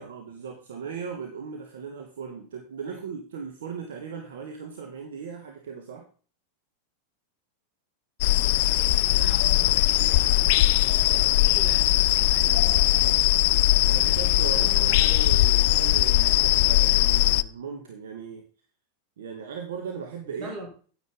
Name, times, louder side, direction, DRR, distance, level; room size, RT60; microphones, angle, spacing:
voice 1, 0.0-6.0 12.3-12.9 13.8-18.4 19.2-20.5, right 6 dB, 60° right, 3 dB, 1.6 m, -38 dB
sound 1, 8.2-17.4, left 17 dB, 50° left, 0.4 m, -20 dB
voice 2, 8.7-11.9 13.7-13.8 14.5-15.4 20.2-20.7, right 2 dB, 40° right, 3 dB, 4.4 m, -43 dB
9.7 x 9.6 x 3.8 m, 0.40 s
figure-of-eight pair, 90°, 0 cm